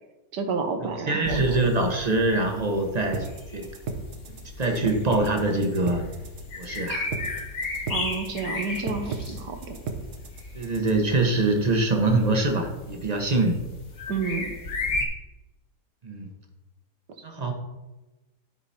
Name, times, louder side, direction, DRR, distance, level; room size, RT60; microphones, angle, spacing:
voice 1, 0.3-1.6 7.9-9.8 14.1-14.5, right 4 dB, 75° right, 5 dB, 1.7 m, -30 dB
voice 2, 1.1-3.7 4.3-6.1 6.6-7.1 10.5-13.6 16.0-16.3 17.2-17.5, right 2 dB, 30° right, 2 dB, 0.9 m, -24 dB
sound 1, 1.2-15.1, left 2 dB, 55° left, 1.6 m, -36 dB
sound 2, 3.1-11.1, right 4 dB, 55° right, 1.0 m, -34 dB
12.5 x 4.8 x 4.2 m, 1.1 s
omnidirectional pair, 1.8 m